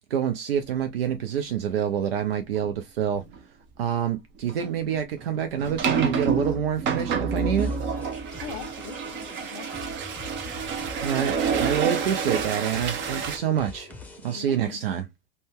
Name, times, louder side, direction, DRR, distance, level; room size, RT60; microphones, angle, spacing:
voice 1, 0.1-3.2 3.8-7.7 11.0-13.9 14.2-15.1, right 8 dB, 80° right, 0.5 m, -27 dB
sound 1, 2.5-2.7 3.1-3.4 4.5-13.4, right 6 dB, 40° right, 0.7 m, -28 dB
sound 2, 7.6-14.4, left 3 dB, 5° left, 0.7 m, -44 dB
voice 2, 8.3-10.0 14.3-14.8, left 9 dB, 55° left, 0.5 m, -42 dB
2.6 x 2.2 x 3.4 m
figure-of-eight pair, 80°, 29 cm